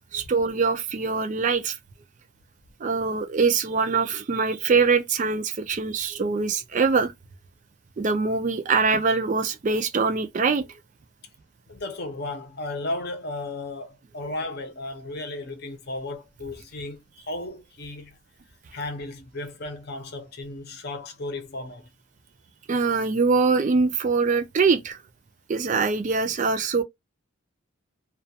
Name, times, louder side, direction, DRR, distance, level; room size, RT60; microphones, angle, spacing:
voice 1, 0.1-1.8 2.8-7.1 8.0-10.6 22.7-25.0 25.5-26.8, right 4 dB, 35° right, 0.3 m, -23 dB
voice 2, 11.7-17.0 17.3-18.2 18.7-21.9, left 2 dB, 50° left, 0.7 m, -34 dB
2.3 x 2.2 x 2.7 m
head